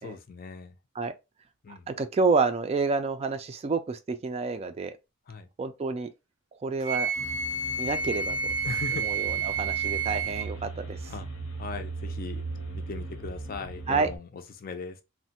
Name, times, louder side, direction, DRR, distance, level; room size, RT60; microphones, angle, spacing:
voice 1, 0.0-0.7 1.6-1.9 5.3-5.5 8.6-9.1 11.1-11.3 11.6-12.4 12.7-15.0, left 4 dB, 45° left, 0.4 m, -39 dB
voice 2, 2.0-4.9 5.6-6.1 6.6-7.1 7.8-8.5 9.0-11.0 13.9-14.1, right 4 dB, 30° right, 0.3 m, -28 dB
Wind instrument woodwind instrument, 6.8-10.5, right 5 dB, 80° right, 0.5 m, -30 dB
sound 1, 7.2-14.2, right 3 dB, 70° left, 0.7 m, -38 dB
3.1 x 2.1 x 2.8 m
head